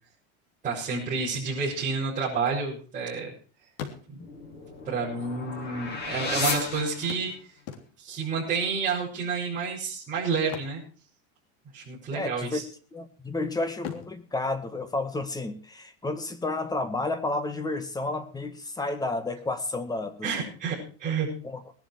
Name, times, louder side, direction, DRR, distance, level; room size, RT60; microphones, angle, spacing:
voice 1, 0.6-3.3 4.1-4.2 4.8-7.3 8.0-10.8 11.7-12.6 20.2-21.3, right 5 dB, 20° right, -7 dB, 6.8 m, -29 dB
sound 1, 2.4-3.4 3.7-4.5 5.4-5.5 5.7-5.8 7.1-8.3 10.3-11.7 11.9-12.2 12.7-13.3 13.7-15.5 17.5-17.6 18.0-18.1, left 8 dB, 60° left, 3.4 m, -43 dB
sound 2, 4.2-7.6, left 3 dB, 30° left, 6.2 m, -33 dB
voice 2, 12.1-12.6 12.9-20.3 21.4-21.6, left 2 dB, 10° left, 9 dB, 1.8 m, -31 dB
19.5 x 11.5 x 4.7 m, 0.40 s
cardioid pair, 155°, 35 cm